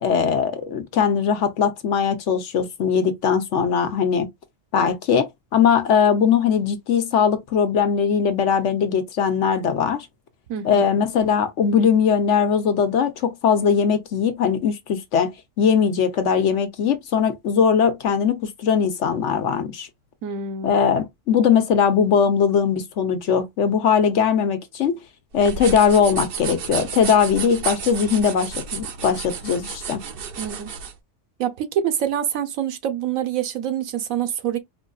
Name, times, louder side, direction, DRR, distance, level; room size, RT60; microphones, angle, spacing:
voice 1, 0.0-4.3 4.7-10.1 10.6-15.3 15.6-19.9 20.6-25.0 25.3-30.0, left 7 dB, 65° left, 1.1 m, -20 dB
voice 2, 10.5-10.8 20.2-20.8 30.4-30.7 31.4-34.6, right 9 dB, 90° right, 1.2 m, -26 dB
sound 1, 25.3-30.9, right 6 dB, 55° right, 0.7 m, -32 dB
4.4 x 2.6 x 2.3 m
omnidirectional pair, 1.4 m